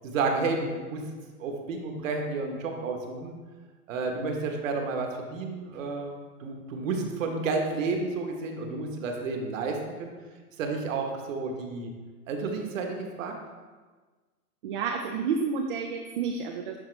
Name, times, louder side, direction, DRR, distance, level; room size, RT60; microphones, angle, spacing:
voice 1, 0.0-1.1 1.4-3.3 3.9-10.1 10.6-11.9 12.3-13.3, right 4 dB, 55° right, 3 dB, 1.2 m, -31 dB
voice 2, 7.0-7.3 14.6-16.8, right 5 dB, 35° right, 3 dB, 0.5 m, -30 dB
10.5 x 3.9 x 3.3 m, 1.4 s
hypercardioid pair, 135°, 47 cm